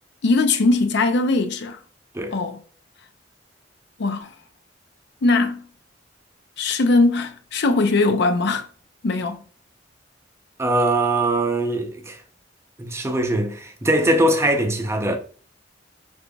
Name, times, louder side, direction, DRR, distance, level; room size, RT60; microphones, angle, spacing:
voice 1, 0.2-1.8 2.3-2.6 4.0-4.3 5.2-5.6 6.6-8.7 9.0-9.4, left 3 dB, 65° left, 0.5 m, -20 dB
voice 2, 10.6-12.2 12.8-15.2, right 1 dB, 15° right, 0.6 m, -21 dB
5.4 x 4.0 x 2.2 m
head